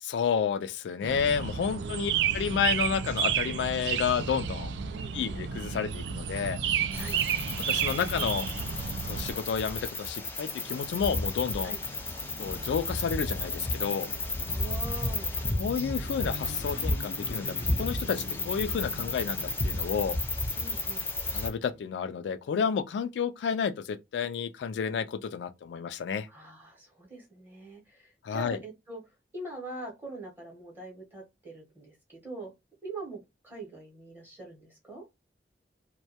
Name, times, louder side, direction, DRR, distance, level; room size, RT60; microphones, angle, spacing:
voice 1, 0.0-4.7 5.1-6.6 7.7-8.5 9.1-11.7 12.4-14.1 15.6-20.2 21.3-26.3 28.2-28.6, left 6 dB, 75° left, 0.3 m, -31 dB
sound 1, 1.0-9.4, right 7 dB, 75° right, 0.3 m, -31 dB
voice 2, 1.7-2.2 4.9-5.4 7.0-7.2 11.6-11.8 14.4-15.3 20.6-21.1 26.3-29.0 29.3-32.5 32.8-35.0, right 2 dB, 10° right, 0.8 m, -43 dB
sound 2, 6.9-21.5, left 2 dB, 10° left, 0.5 m, -33 dB
sound 3, 10.5-21.8, left 1 dB, 90° left, 0.8 m, -45 dB
2.2 x 2.1 x 2.7 m
head